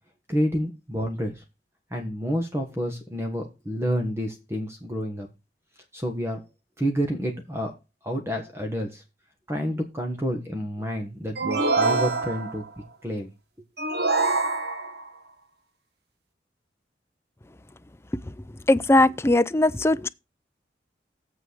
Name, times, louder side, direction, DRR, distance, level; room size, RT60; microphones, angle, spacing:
voice 1, 0.3-1.4 1.9-5.3 5.9-6.4 6.8-7.8 8.0-9.0 9.5-12.6 13.0-13.3, equal, 15° right, 1.5 m, -29 dB
sound 1, 11.3-12.7 13.8-15.1, right 3 dB, 65° right, 1.4 m, -25 dB
voice 2, 18.7-20.1, left 2 dB, 15° left, 0.4 m, -19 dB
7.7 x 6.0 x 6.3 m
head